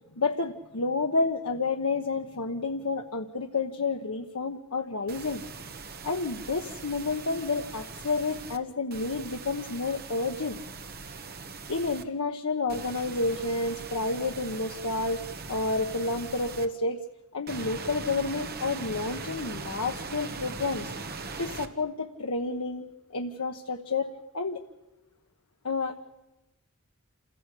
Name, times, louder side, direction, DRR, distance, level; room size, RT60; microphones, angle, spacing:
voice 1, 0.1-5.4 6.0-10.6 11.7-15.2 15.5-17.0 17.3-20.9 21.4-22.9 23.1-24.6 25.6-26.0, left 3 dB, 85° left, 3 dB, 1.2 m, -30 dB
sound 1, 5.1-8.6 8.9-12.0 12.7-16.7 17.5-21.7, right 4 dB, 45° right, 1.5 m, -40 dB
28.0 x 16.0 x 8.4 m, 0.99 s
head